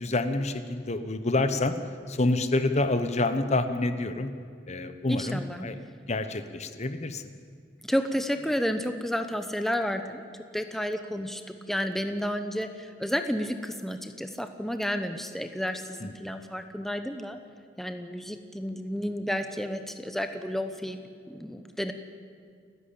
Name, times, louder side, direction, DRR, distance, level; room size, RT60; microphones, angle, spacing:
voice 1, 0.0-1.7 2.1-4.3 4.7-5.7 6.1-7.2 16.0-16.1, left 2 dB, 40° left, 10 dB, 1.0 m, -27 dB
voice 2, 5.1-5.7 7.9-10.2 10.5-17.4 17.8-21.9, equal, ahead, 7 dB, 0.9 m, -31 dB
29.5 x 11.0 x 8.6 m, 2.2 s
head